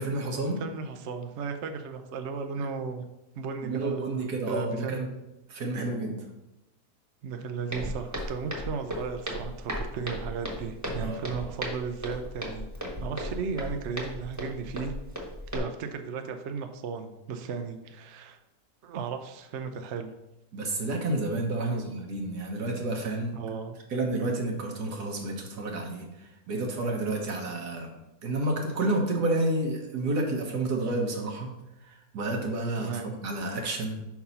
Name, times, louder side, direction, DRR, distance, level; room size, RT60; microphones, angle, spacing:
voice 1, 0.0-0.6 3.6-5.1 5.5-6.2 11.0-11.2 20.5-23.4 23.9-27.9 28.2-31.5 31.8-34.0, right 2 dB, 80° right, 1 dB, 1.8 m, -30 dB
voice 2, 0.6-3.0 3.4-4.2 4.5-5.1 7.2-12.7 13.0-14.9 15.5-18.4 18.8-20.1 21.5-21.9 23.3-23.8 32.8-33.1, right 5 dB, 60° right, 6 dB, 0.8 m, -35 dB
Walk footsteps, 7.7-15.6, equal, 10° right, 1.2 m, -36 dB
5.2 x 4.7 x 5.5 m, 0.93 s
omnidirectional pair, 1.7 m